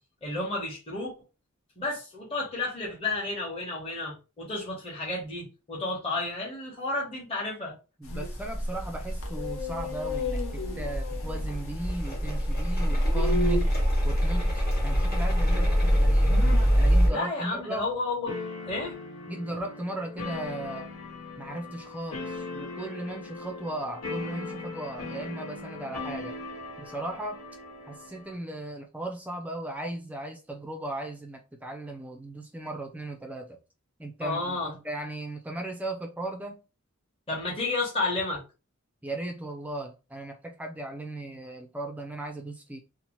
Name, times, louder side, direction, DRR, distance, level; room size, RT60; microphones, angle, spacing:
voice 1, 0.2-1.1 1.8-7.8 17.1-18.4 18.7-19.0 34.2-34.7 37.3-38.4, left 2 dB, 25° left, 0.9 m, -31 dB
sound 1, 8.0-17.1, left 1 dB, 60° left, 0.6 m, -34 dB
voice 2, 8.0-13.8 14.0-16.4 16.8-17.9 19.3-20.9 21.4-26.4 26.8-27.4 27.9-33.6 34.0-36.6 39.0-42.8, right 1 dB, 5° right, 0.3 m, -36 dB
sound 2, 10.1-17.1, equal, 45° left, 1.1 m, -24 dB
sound 3, 18.3-28.3, left 3 dB, 85° left, 0.9 m, -39 dB
2.7 x 2.1 x 2.9 m
head